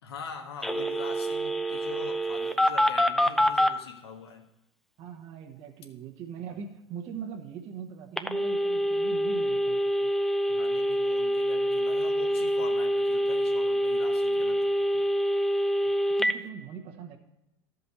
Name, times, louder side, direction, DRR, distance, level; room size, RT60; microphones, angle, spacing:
voice 1, 0.0-4.5 6.5-6.6 10.5-15.0, left 6 dB, 80° left, 4 dB, 1.4 m, -44 dB
Telephone, 0.6-3.7 8.2-16.3, equal, ahead, 0.6 m, -26 dB
voice 2, 5.0-10.1 15.8-17.2, right 7 dB, 50° right, 0 dB, 1.4 m, -41 dB
13.5 x 5.4 x 4.2 m, 0.92 s
hypercardioid pair, 85°, 13 cm